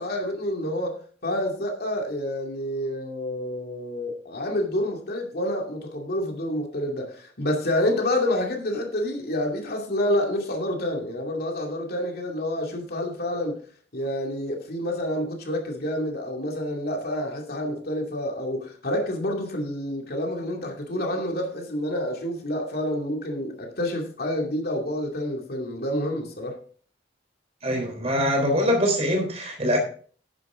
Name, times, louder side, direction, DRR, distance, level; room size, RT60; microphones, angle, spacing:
voice 1, 0.0-13.6 13.9-26.6, left 1 dB, 60° left, 2.5 m, -28 dB
voice 2, 27.6-29.8, equal, 35° right, 3.8 m, -23 dB
11.0 x 9.9 x 3.7 m
head